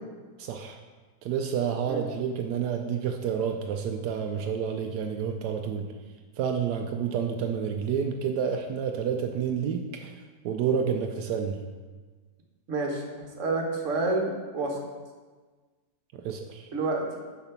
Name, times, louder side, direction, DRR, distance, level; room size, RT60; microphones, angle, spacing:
voice 1, 0.4-0.8 1.2-5.9 6.4-10.1 10.4-11.6 16.1-16.7, right 7 dB, 85° right, 4 dB, 1.1 m, -29 dB
voice 2, 12.7-14.8 16.7-17.2, right 2 dB, 50° right, 1 dB, 1.4 m, -29 dB
6.8 x 5.1 x 5.8 m, 1.4 s
omnidirectional pair, 1.7 m